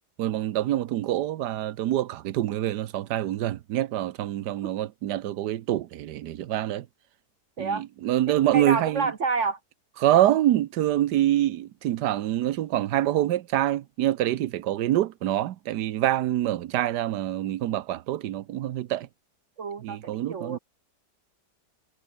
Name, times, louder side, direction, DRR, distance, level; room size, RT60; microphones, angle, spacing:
voice 1, 0.2-6.9 7.6-9.1 10.0-19.1 19.8-20.6, right 13 dB, 80° right, 1.4 m, -26 dB
voice 2, 8.3-9.6 19.6-20.6, right 4 dB, 50° right, 1.3 m, -29 dB
omnidirectional pair, 1.8 m